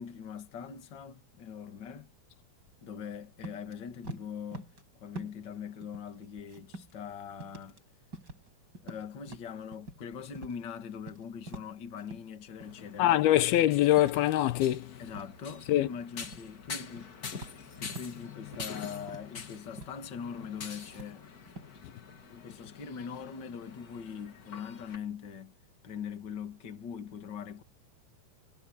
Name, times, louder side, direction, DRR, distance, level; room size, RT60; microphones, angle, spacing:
voice 1, 0.0-2.1 2.8-4.7 4.9-7.8 8.8-13.3 15.0-17.2 17.8-21.3 22.3-25.6 25.8-27.6, left 7 dB, 35° left, 2.1 m, -42 dB
sound 1, 3.4-3.7 4.0-4.8 5.2-5.6 5.8-7.0 7.4-7.8 8.1-8.5 8.7-10.0 10.4-10.6 10.9-12.3 12.6-12.9 13.3-13.6 14.0-14.9 15.1-15.9 16.2-16.5 16.8-18.2 18.5-18.8 19.1-19.4 19.8-20.0 20.3-20.6 20.9-21.7, right 2 dB, 25° right, 6.0 m, -46 dB
sound 2, 12.6-25.0, left 6 dB, 60° left, 0.9 m, -46 dB
voice 2, 13.0-14.9 15.7-15.9, left 13 dB, 90° left, 2.9 m, -24 dB
omnidirectional pair, 4.3 m